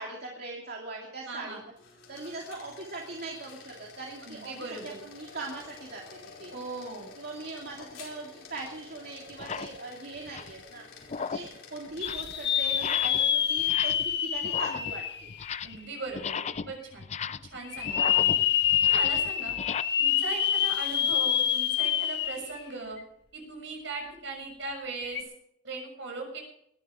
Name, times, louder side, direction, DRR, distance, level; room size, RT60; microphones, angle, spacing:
voice 1, 0.0-1.6 2.1-4.5 4.8-6.5 7.2-10.9 11.2-15.3, right 3 dB, 55° right, -1 dB, 2.6 m, -40 dB
voice 2, 1.3-1.6 4.2-5.0 6.5-7.1 15.6-17.0 17.4-18.4 18.8-19.6 20.0-23.0 23.3-25.3 25.6-26.4, right 3 dB, 70° right, 2 dB, 6.8 m, -39 dB
sound 1, 1.7-13.4, left 5 dB, 80° left, 4.9 m, -50 dB
sound 2, 7.7-7.9 8.7-8.8 9.3-9.8 10.2-10.6 11.0-11.6 11.9-12.3 12.7-13.3 13.6-14.1 14.4-15.9 16.1-19.8, left 6 dB, 35° left, 0.5 m, -36 dB
sound 3, 12.0-16.0 16.5-16.6 17.7-22.6 23.0-23.1 25.0-25.2, left 9 dB, 60° left, 1.5 m, -27 dB
20.0 x 11.5 x 5.0 m, 0.72 s
head